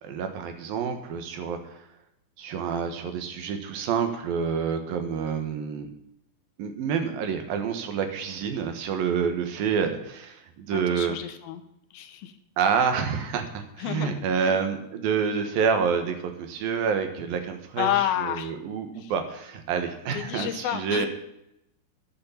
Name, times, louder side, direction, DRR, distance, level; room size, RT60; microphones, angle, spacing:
voice 1, 0.0-1.9 2.4-5.9 6.6-11.2 12.6-21.1, right 6 dB, 65° right, 6 dB, 2.9 m, -28 dB
voice 2, 10.7-11.6 11.9-12.3 13.8-14.5 17.8-18.5 19.0-19.1 20.1-21.1, left 11 dB, 75° left, 7 dB, 2.4 m, -30 dB
11.0 x 8.4 x 7.1 m, 0.82 s
omnidirectional pair, 4.8 m